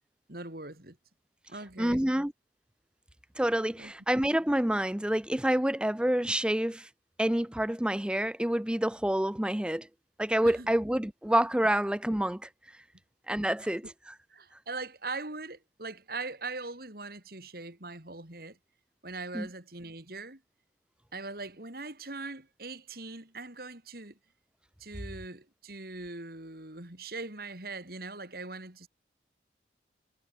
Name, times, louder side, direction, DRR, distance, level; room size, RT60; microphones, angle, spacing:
voice 1, 0.3-1.0 1.5-2.1 3.8-3.9 10.4-10.7 14.3-18.6 19.0-20.4 21.1-24.2 24.8-28.9, right 3 dB, 55° right, 3.8 m, -41 dB
voice 2, 1.8-2.3 3.4-6.9 7.2-9.9 10.2-12.5 13.3-14.1 19.3-19.5, right 1 dB, 5° right, 0.5 m, -28 dB
head